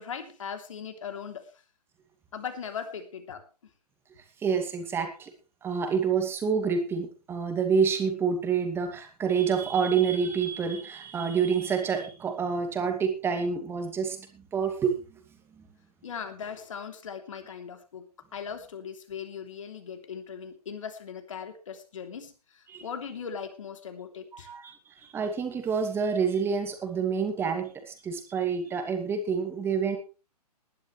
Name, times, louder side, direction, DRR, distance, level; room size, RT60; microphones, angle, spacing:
voice 1, 0.0-1.5 2.3-3.5 16.0-18.1 18.3-24.5, left 7 dB, 50° left, 6 dB, 3.2 m, -39 dB
voice 2, 4.4-5.3 5.6-14.2 14.5-14.9 22.7-22.8 24.3-24.7 25.1-30.0, right 6 dB, 10° right, 5 dB, 2.3 m, -27 dB
19.5 x 12.0 x 3.3 m, 0.32 s
figure-of-eight pair, 125°, 21 cm